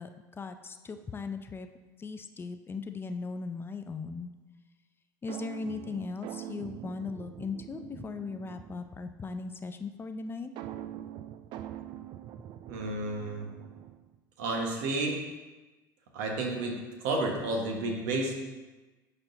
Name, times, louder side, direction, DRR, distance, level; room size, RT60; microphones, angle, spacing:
voice 1, 0.0-1.7 2.0-4.3 5.2-10.5, left 4 dB, 20° left, 8 dB, 0.5 m, -38 dB
sound 1, 5.3-9.0 10.6-14.2, right 12 dB, 50° right, 0.4 m, -43 dB
voice 2, 12.7-13.5 14.4-15.2 16.1-18.3, right 2 dB, 70° right, 1 dB, 1.2 m, -31 dB
10.0 x 4.4 x 2.6 m, 1.2 s
hypercardioid pair, 75°, 10 cm